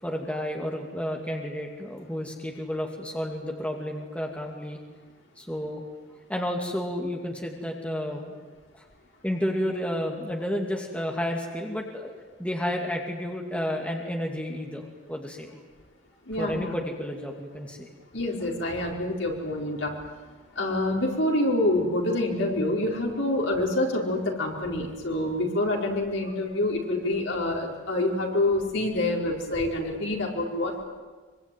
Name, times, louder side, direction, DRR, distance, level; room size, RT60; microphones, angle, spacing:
voice 1, 0.0-4.8 5.4-5.8 6.3-8.4 8.7-8.8 9.2-12.1 12.4-14.8 15.1-15.6 16.4-17.9, equal, 5° left, 1 dB, 2.6 m, -31 dB
voice 2, 16.3-16.7 18.1-19.9 20.5-30.8, left 1 dB, 70° left, 0 dB, 4.7 m, -27 dB
24.5 x 24.0 x 9.3 m, 1.4 s
head